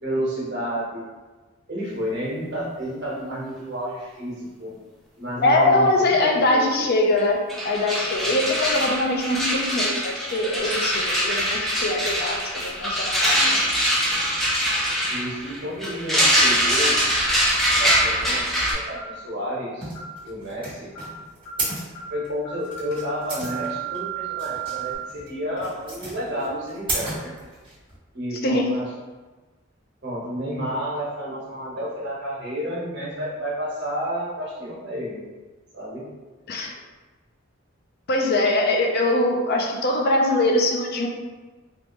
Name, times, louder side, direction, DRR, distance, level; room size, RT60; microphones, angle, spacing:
voice 1, 0.0-1.0 1.7-4.7 5.2-6.9 8.1-8.4 15.1-17.0 17.7-18.5 18.7-19.9 20.2-20.9 22.1-27.3 28.1-28.8 30.0-35.2 35.7-36.1, equal, 60° right, -7 dB, 1.2 m, -30 dB
voice 2, 5.4-7.4 7.6-13.6 28.4-28.7 36.5-36.7 38.1-41.1, left 2 dB, 50° left, 1 dB, 0.5 m, -22 dB
sound 1, 7.2-7.3 7.5-18.7, equal, ahead, 0.6 m, -23 dB
sound 2, 18.1-18.2 18.9-19.2 19.9-20.2 20.9-21.2 21.4-21.7 21.9-22.2 22.4-24.9, right 10 dB, 75° left, 1.3 m, -34 dB
sound 3, 19.8-28.0, right 2 dB, 25° right, 1.4 m, -34 dB
3.5 x 2.5 x 3.1 m, 1.3 s
head